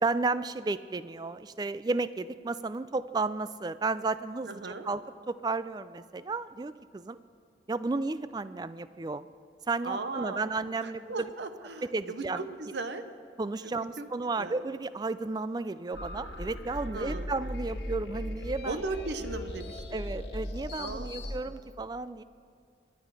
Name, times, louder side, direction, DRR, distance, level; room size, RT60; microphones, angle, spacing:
voice 1, 0.0-5.0 5.3-7.2 7.7-9.3 9.7-11.3 11.8-12.4 13.4-18.8 19.9-22.2, right 3 dB, 25° right, 14 dB, 0.3 m, -33 dB
voice 2, 4.4-4.9 9.8-10.4 10.8-13.0 13.6-14.1 14.4-14.6 16.9-17.3 18.6-19.8 20.7-21.2 21.6-21.7, right 3 dB, 80° right, 9 dB, 0.9 m, -37 dB
sound 1, 15.9-21.4, left 1 dB, 65° left, 1.6 m, -38 dB
23.0 x 9.2 x 4.8 m, 2.4 s
head